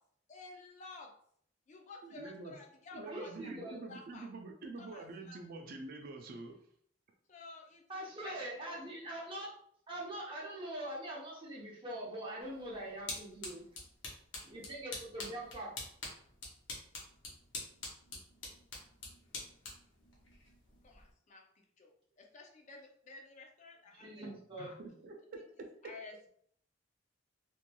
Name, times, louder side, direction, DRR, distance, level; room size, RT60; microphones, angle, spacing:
voice 1, 0.3-1.1 1.7-3.5 3.9-4.3 4.8-5.4 7.3-8.8 20.8-24.3 24.6-24.8 25.8-26.3, left 3 dB, 40° left, 1 dB, 0.4 m, -53 dB
voice 2, 2.0-2.6 2.9-6.6 24.2-25.2, right 3 dB, 50° right, 3 dB, 0.4 m, -47 dB
voice 3, 3.1-3.8 7.9-9.5 9.9-13.6 14.4-15.7 23.9-24.7, right 1 dB, 25° right, -4 dB, 0.8 m, -43 dB
sound 1, 12.4-21.1, left 2 dB, 80° left, 0.9 m, -47 dB
3.0 x 2.5 x 2.2 m, 0.63 s
head